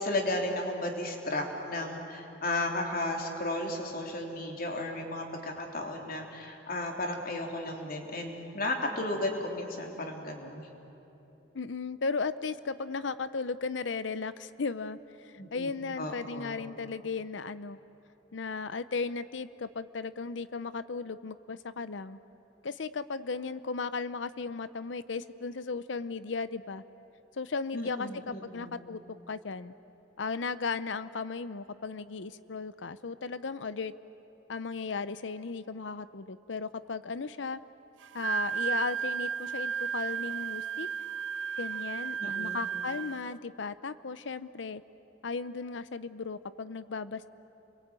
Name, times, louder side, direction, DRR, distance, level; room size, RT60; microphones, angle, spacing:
voice 1, 0.0-10.7 15.4-15.7 16.0-16.6 27.7-28.8 42.2-42.6, left 1 dB, 55° left, 2 dB, 3.5 m, -34 dB
voice 2, 11.5-17.8 18.3-22.2 22.6-26.8 27.4-29.0 29.3-29.7 30.2-33.9 34.5-37.6 38.1-40.9 41.6-44.8 45.2-47.3, left 4 dB, 75° left, 14 dB, 0.7 m, -36 dB
Wind instrument woodwind instrument, 38.0-43.3, right 7 dB, 75° right, 0.5 m, -33 dB
29.5 x 22.5 x 8.9 m, 3.0 s
head